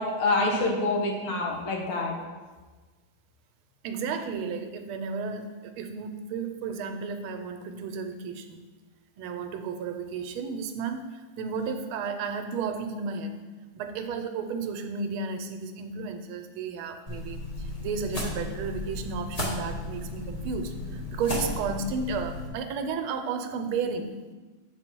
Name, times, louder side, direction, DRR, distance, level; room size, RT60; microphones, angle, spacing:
voice 1, 0.0-2.1, left 2 dB, 75° left, 0 dB, 1.9 m, -26 dB
voice 2, 3.8-8.6 9.2-11.1 11.4-13.3 13.7-24.2, right 5 dB, 80° right, 7 dB, 1.5 m, -33 dB
sound 1, 17.1-22.5, left 1 dB, 25° left, 0.9 m, -34 dB
7.2 x 4.2 x 4.4 m, 1.3 s
omnidirectional pair, 2.3 m